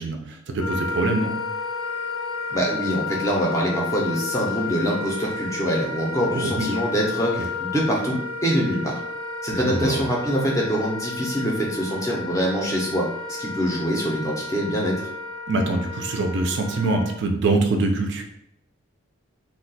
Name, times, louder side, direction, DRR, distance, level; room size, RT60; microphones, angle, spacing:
voice 1, 0.0-1.3 6.3-6.8 7.4-7.5 9.5-10.1 15.5-18.2, right 2 dB, 55° right, 4 dB, 0.4 m, -24 dB
Wind instrument woodwind instrument, 0.6-17.2, left 4 dB, 65° left, 0.6 m, -32 dB
voice 2, 2.5-9.0 9.4-13.1 13.4-14.9, equal, 15° left, -2 dB, 0.5 m, -24 dB
2.3 x 2.2 x 3.9 m, 0.78 s
head